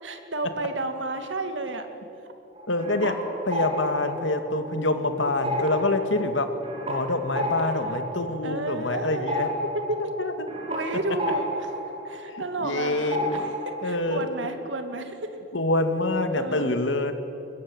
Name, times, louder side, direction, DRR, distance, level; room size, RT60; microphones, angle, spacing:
voice 1, 0.0-1.9 3.9-4.2 4.9-5.3 7.3-8.1 8.4-9.3 9.9-10.0 10.7-11.8 12.0-13.5 13.8-15.2 16.3-16.7, right 2 dB, 80° right, 6 dB, 2.5 m, -32 dB
sound 1, 2.6-5.0 5.3-12.8 13.1-13.9, equal, 30° right, 5.7 m, -32 dB
voice 2, 2.7-3.2 3.5-6.5 6.9-9.5 10.2-10.3 12.6-13.6 13.8-14.2 15.5-17.1, left 2 dB, 85° left, 7 dB, 2.3 m, -26 dB
22.5 x 21.5 x 9.8 m, 2.9 s
head